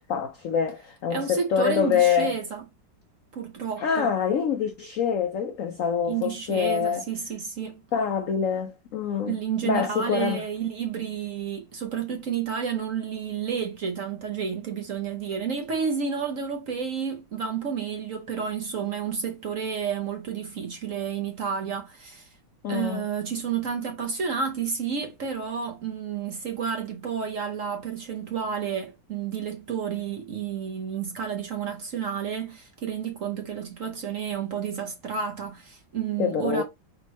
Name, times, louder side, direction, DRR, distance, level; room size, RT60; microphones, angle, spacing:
voice 1, 0.1-2.4 3.8-7.0 7.9-9.4 9.6-10.4 22.6-23.0 36.2-36.6, left 7 dB, 80° left, 0.7 m, -25 dB
voice 2, 1.1-2.6 3.3-4.1 6.1-7.8 9.2-22.3 22.7-36.6, right 7 dB, 55° right, 1.0 m, -30 dB
4.4 x 3.6 x 3.1 m
omnidirectional pair, 2.1 m